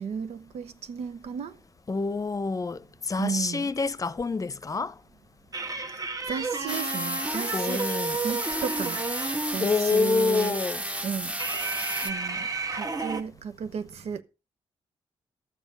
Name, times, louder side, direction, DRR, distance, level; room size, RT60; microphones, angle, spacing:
voice 1, 0.0-1.6 3.2-3.7 6.3-9.0 9.5-10.5 11.0-11.3 12.0-14.2, right 7 dB, 75° right, 0.9 m, -34 dB
voice 2, 1.9-4.9 7.5-8.2 9.6-10.8, left 4 dB, 35° left, 0.7 m, -27 dB
sound 1, 5.5-9.7 11.4-13.2, right 3 dB, 35° right, 1.4 m, -32 dB
sound 2, 6.7-12.1, right 1 dB, 10° right, 1.0 m, -32 dB
12.0 x 7.2 x 5.1 m
supercardioid pair, 60°, 11 cm